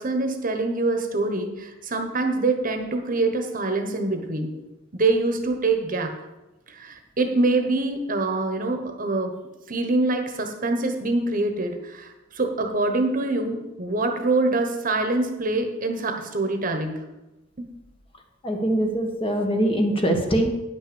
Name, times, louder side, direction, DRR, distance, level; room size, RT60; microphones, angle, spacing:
voice 1, 0.0-4.6 4.9-6.1 6.7-9.3 9.7-17.0 17.6-17.7, right 2 dB, 45° right, 5 dB, 1.2 m, -25 dB
voice 2, 18.4-20.5, right 1 dB, 30° left, 3 dB, 1.4 m, -23 dB
9.8 x 6.1 x 6.9 m, 1.0 s
head